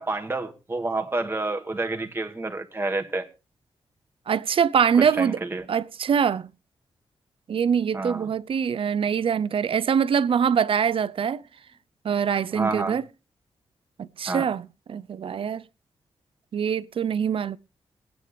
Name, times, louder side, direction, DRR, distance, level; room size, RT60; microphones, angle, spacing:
voice 1, 0.0-3.3 5.2-5.6 7.9-8.3 12.5-13.0 14.3-14.5, right 2 dB, 20° right, 2.0 m, -29 dB
voice 2, 4.3-5.4 5.7-6.5 7.5-11.4 12.0-13.0 14.0-15.6 16.5-17.6, right 7 dB, 65° right, 0.7 m, -24 dB
22.5 x 9.2 x 3.4 m
wide cardioid pair, 95°, 10 cm